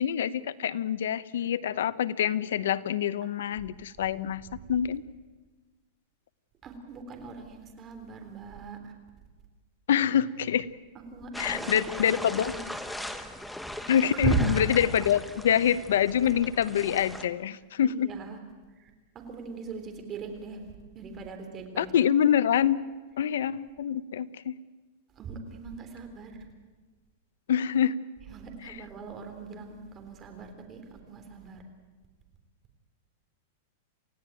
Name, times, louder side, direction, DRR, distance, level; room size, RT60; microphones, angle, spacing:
voice 1, 0.0-4.4 4.7-5.0 9.9-10.7 11.4-12.5 13.9-18.1 21.8-22.8 23.2-24.6 27.5-28.0 28.6-28.8, left 9 dB, 80° left, 16 dB, 0.9 m, -26 dB
voice 2, 6.6-8.9 11.1-12.1 12.4-12.6 14.1-14.6 17.8-18.4 19.2-20.6 21.0-21.9 25.2-26.3 28.3-30.8 31.1-31.6, right 5 dB, 20° right, 4 dB, 3.7 m, -37 dB
sound 1, 11.3-17.3, left 1 dB, ahead, 1.2 m, -39 dB
28.5 x 16.5 x 9.1 m, 1.3 s
supercardioid pair, 160°, 0 cm